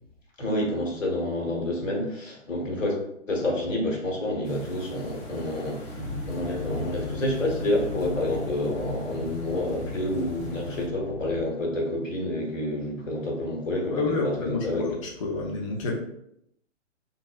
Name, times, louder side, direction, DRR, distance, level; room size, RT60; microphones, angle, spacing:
voice 1, 0.4-3.0 3.3-14.8, left 1 dB, 80° left, -1 dB, 1.2 m, -29 dB
sound 1, 4.4-10.9, equal, 60° left, 1.0 m, -42 dB
sound 2, 5.9-11.4, left 2 dB, 30° right, 0.6 m, -36 dB
voice 2, 13.8-15.9, left 3 dB, 30° left, -1 dB, 0.4 m, -29 dB
2.8 x 2.5 x 2.4 m, 0.76 s
figure-of-eight pair, 125°, 38 cm